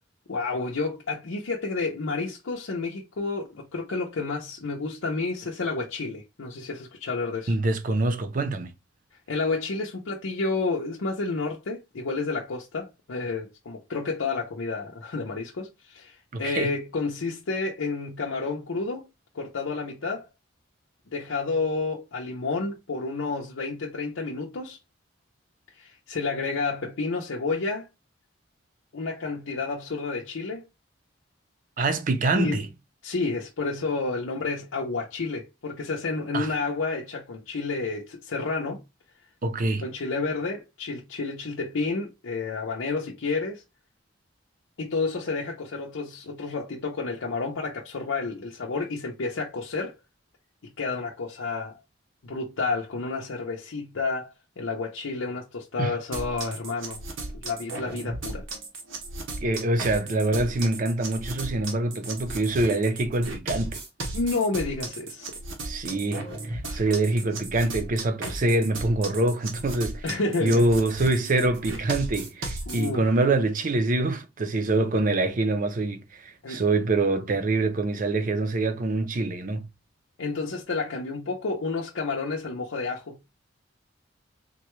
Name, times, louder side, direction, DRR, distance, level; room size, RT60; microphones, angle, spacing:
voice 1, 0.3-7.5 9.3-19.1 19.3-20.3 21.1-24.8 25.8-27.9 28.9-30.7 32.3-32.6 33.0-38.8 39.8-43.6 44.8-50.0 50.8-51.8 52.2-57.0 57.3-58.4 64.1-65.3 66.6-66.8 70.0-70.7 72.7-73.0 76.4-76.6 80.2-83.2, left 3 dB, 90° left, 0.6 m, -30 dB
voice 2, 7.5-8.7 16.3-16.7 31.8-32.7 36.3-36.5 39.4-39.8 55.8-55.9 59.4-63.8 65.6-70.0 70.4-79.7, right 2 dB, 45° right, 0.5 m, -25 dB
sound 1, 56.1-72.9, right 2 dB, 80° right, 0.9 m, -35 dB
3.9 x 2.2 x 3.0 m
head